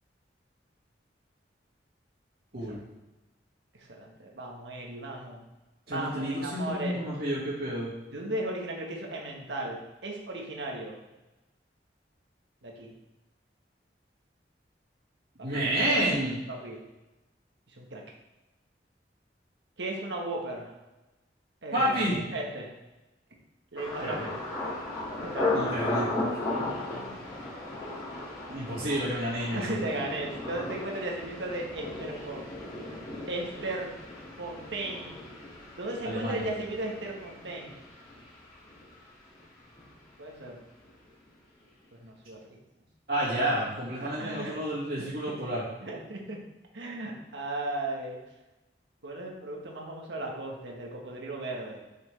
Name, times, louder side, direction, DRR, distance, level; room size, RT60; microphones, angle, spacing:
voice 1, 3.8-5.4 5.9-7.0 8.1-11.0 12.6-12.9 15.5-15.8 16.5-16.8 17.8-18.0 19.8-20.8 21.6-22.7 23.7-24.4 25.1-25.8 26.5-27.5 29.5-32.4 33.3-33.9 34.4-35.2 35.7-37.8 40.2-40.6 41.9-42.4 44.0-44.5 45.8-46.4 46.7-48.2 49.0-51.8, right 2 dB, 85° right, -1 dB, 1.4 m, -36 dB
voice 2, 5.9-7.9 15.4-16.4 21.7-22.2 24.0-24.3 25.5-26.1 28.5-29.8 36.0-36.5 43.1-45.6, right 1 dB, 55° right, -10 dB, 2.0 m, -29 dB
Thunder, 23.8-39.5 39.8-40.4 40.8-41.1, left 2 dB, 25° left, 2.3 m, -36 dB
6.9 x 5.9 x 3.4 m, 1.0 s
head